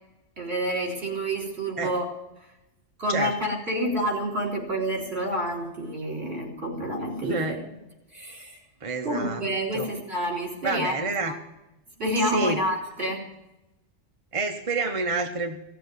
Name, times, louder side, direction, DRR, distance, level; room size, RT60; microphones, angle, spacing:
voice 1, 0.4-2.0 3.0-7.6 8.1-8.6 9.0-10.9 11.2-11.3 12.0-13.3, equal, 55° right, -1 dB, 4.1 m, -28 dB
voice 2, 7.2-7.6 8.8-9.4 9.7-9.9 10.6-11.3 12.2-12.6 14.3-15.6, right 3 dB, 30° right, 4 dB, 0.9 m, -28 dB
17.0 x 7.6 x 9.3 m, 0.94 s
omnidirectional pair, 1.3 m